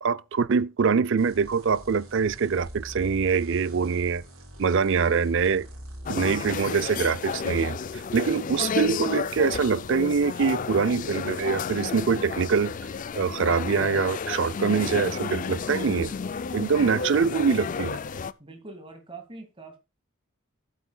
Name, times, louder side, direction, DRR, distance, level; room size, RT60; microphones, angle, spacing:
voice 1, 0.0-4.2 4.6-5.7 6.1-12.7 13.1-16.1 16.5-18.0, right 5 dB, 60° right, 0.5 m, -24 dB
sound 1, 1.2-6.8, right 1 dB, 80° right, 3.8 m, -44 dB
sound 2, 6.1-18.3, left 5 dB, 40° left, 0.4 m, -32 dB
voice 2, 18.4-19.8, right 3 dB, 25° right, 2.1 m, -43 dB
15.0 x 8.3 x 2.3 m
head